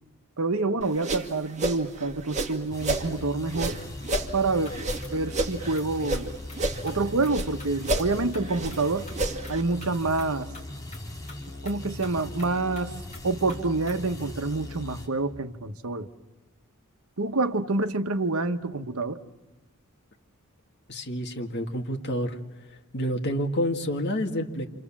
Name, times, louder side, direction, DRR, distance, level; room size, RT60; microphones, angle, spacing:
voice 1, 0.4-3.8 4.3-4.7 5.1-6.4 6.8-9.1 9.5-10.5 11.6-12.9 13.2-16.1 17.2-19.2, right 3 dB, 70° right, 1.2 m, -27 dB
sound 1, 0.8-3.1 3.5-6.3 6.5-7.5 7.8-9.6, right 2 dB, 35° right, 2.0 m, -30 dB
sound 2, 2.7-15.1, left 1 dB, 15° left, 3.5 m, -39 dB
sound 3, 4.7-4.8 5.0-5.1 5.4-5.9 6.1-6.2 6.5-6.6 6.9-7.0 7.2-7.3 7.6-7.7 8.0-8.1 8.3-8.8 9.1-9.2 9.4-9.6 9.8-9.9 10.2-10.3 10.5-10.6 10.9-11.0 11.3-11.4 11.7-11.8 12.0-12.1 12.4-12.5 12.8-12.9 13.1-13.2 13.5-13.6 13.9-14.0, left 4 dB, 35° left, 4.5 m, -46 dB
voice 2, 20.9-22.4 22.9-24.7, equal, 55° left, 2.3 m, -28 dB
28.5 x 27.0 x 7.4 m
head